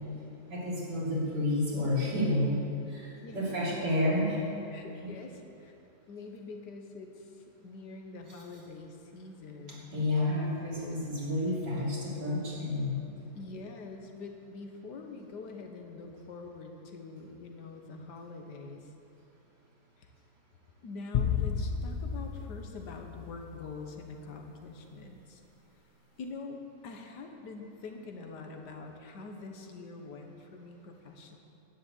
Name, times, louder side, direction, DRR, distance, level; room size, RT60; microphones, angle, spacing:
voice 1, 0.5-2.5 2.9-4.4 5.0-5.1 9.9-13.0, left 1 dB, 80° right, -6 dB, 4.0 m, -30 dB
voice 2, 3.2-3.8 4.7-5.8 6.1-9.9 10.8-11.0 13.4-18.9 20.0-20.1 20.8-25.4 26.2-31.4, left 3 dB, 75° left, 3 dB, 1.8 m, -45 dB
sound 1, 21.1-23.6, left 7 dB, 55° left, 0.6 m, -32 dB
11.0 x 9.9 x 8.5 m, 2.8 s
omnidirectional pair, 1.8 m